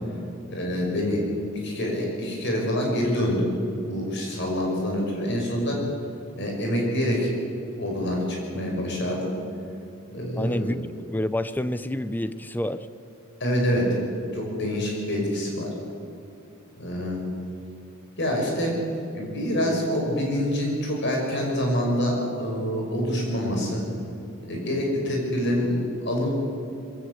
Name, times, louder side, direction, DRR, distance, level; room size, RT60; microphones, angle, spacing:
voice 1, 0.5-1.2 1.6-3.5 3.8-5.8 6.4-7.3 7.7-9.3 10.1-10.6 13.4-14.0 14.3-15.7 16.8-17.2 18.2-18.8 19.1-23.8 24.4-26.3, equal, 55° left, 0 dB, 5.7 m, -26 dB
voice 2, 10.4-10.8 11.1-12.9, left 1 dB, 10° left, 14 dB, 0.6 m, -28 dB
22.0 x 15.5 x 8.2 m, 2.6 s
head